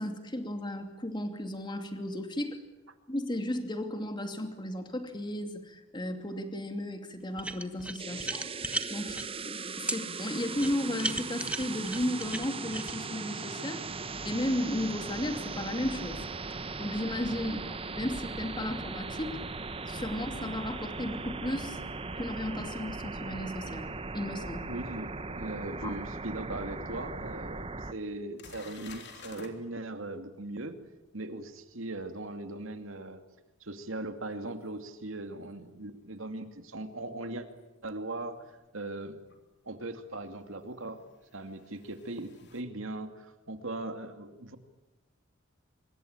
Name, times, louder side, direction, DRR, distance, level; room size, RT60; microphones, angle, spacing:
voice 1, 0.0-2.6 3.1-8.5 8.9-9.2 9.5-13.8 14.2-16.2 16.8-19.4 19.9-21.8 22.1-23.9 24.1-24.7 25.8-25.9, left 1 dB, 25° left, 6 dB, 2.7 m, -34 dB
sound 1, 7.4-9.3 9.9-10.0 10.6-12.9, right 2 dB, 5° right, 1.3 m, -35 dB
sound 2, 8.0-27.9, right 4 dB, 30° right, 1.0 m, -38 dB
voice 2, 24.7-30.8 31.1-33.2 33.6-37.5 37.8-38.4 38.7-39.2 39.6-41.0 41.3-44.6, right 2 dB, 70° right, 7 dB, 2.5 m, -39 dB
sound 3, 27.2-27.3 27.8-27.9 28.4-29.5 34.7-34.8 37.5-37.6 39.3-39.4 40.8-42.6, left 4 dB, 60° left, 3.4 m, -50 dB
25.5 x 22.5 x 8.9 m, 1.1 s
head